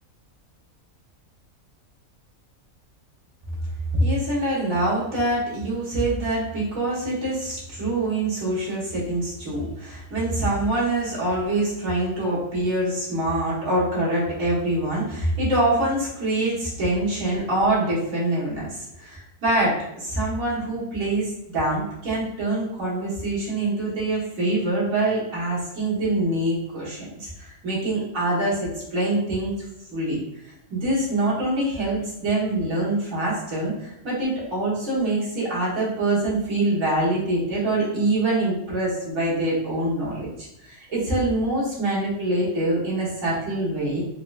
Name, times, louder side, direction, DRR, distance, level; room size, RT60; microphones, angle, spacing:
voice 1, 3.9-29.5 29.9-30.2 30.7-40.3 40.6-44.0, right 1 dB, 80° right, -8 dB, 1.7 m, -25 dB
4.6 x 2.1 x 2.3 m, 0.83 s
omnidirectional pair, 1.4 m